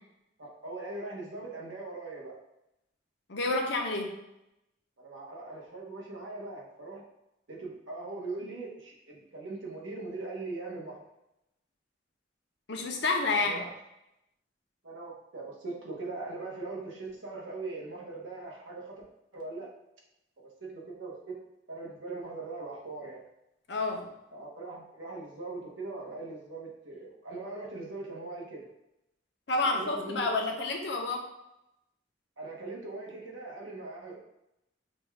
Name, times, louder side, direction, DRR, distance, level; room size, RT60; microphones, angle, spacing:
voice 1, 0.4-2.3 5.0-7.0 7.5-11.0 13.3-13.7 14.8-19.0 19.3-19.7 20.6-21.3 21.7-23.2 24.3-28.7 29.6-30.3 32.4-34.2, right 3 dB, 85° right, -3 dB, 1.1 m, -40 dB
voice 2, 3.3-4.1 12.7-13.6 23.7-24.1 29.5-31.3, left 3 dB, 65° left, 1 dB, 0.7 m, -29 dB
5.1 x 2.3 x 3.4 m, 0.87 s
head